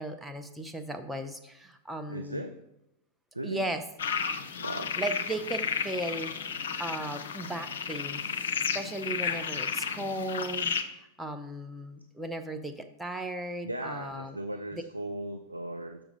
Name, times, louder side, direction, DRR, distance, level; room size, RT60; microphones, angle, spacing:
voice 1, 0.0-2.4 3.4-3.8 5.0-6.3 6.8-8.2 8.7-14.4 14.7-14.8, right 1 dB, 5° right, 5 dB, 0.6 m, -36 dB
voice 2, 2.1-2.5 3.3-3.6 4.6-4.9 13.6-16.0, right 1 dB, 85° right, 6 dB, 0.4 m, -37 dB
sound 1, 4.0-10.8, left 6 dB, 60° left, 0.6 m, -33 dB
6.6 x 5.9 x 3.9 m, 0.86 s
figure-of-eight pair, 90°, 0 cm